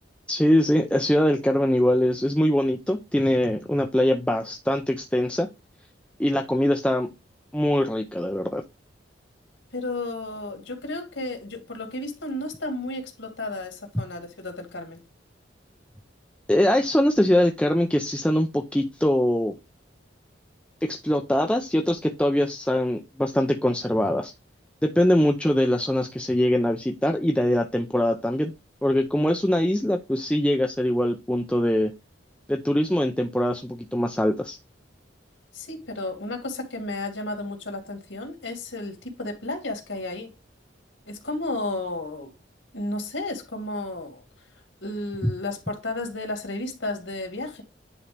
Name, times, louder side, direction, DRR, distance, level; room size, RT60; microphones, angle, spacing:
voice 1, 0.3-5.5 6.2-7.1 7.5-8.6 16.5-19.6 20.8-24.3 24.8-28.5 28.8-31.9 32.5-34.6, left 1 dB, 5° left, 0.6 m, -22 dB
voice 2, 9.7-15.0 35.5-40.3 41.1-42.4 42.7-44.2 44.8-47.6, left 2 dB, 90° left, 2.5 m, -33 dB
9.9 x 3.9 x 3.4 m
head